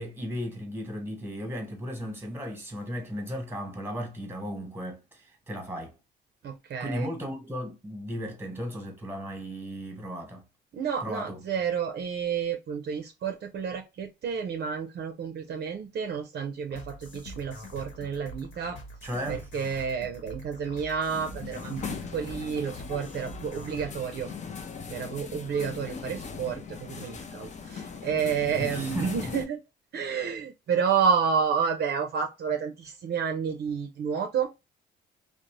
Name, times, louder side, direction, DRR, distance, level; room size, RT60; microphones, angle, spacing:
voice 1, 0.0-5.9 6.8-10.4 11.0-11.4 19.0-19.5 28.6-29.3, equal, 10° right, 1.1 m, -35 dB
voice 2, 6.4-7.1 10.7-18.8 19.3-24.3 24.9-29.6 29.9-34.5, right 6 dB, 55° right, 0.5 m, -30 dB
sound 1, 16.7-23.9, equal, 85° left, 1.0 m, -44 dB
sound 2, 21.1-29.4, left 6 dB, 35° left, 0.5 m, -39 dB
2.5 x 2.0 x 3.0 m
cardioid pair, 90°, 20 cm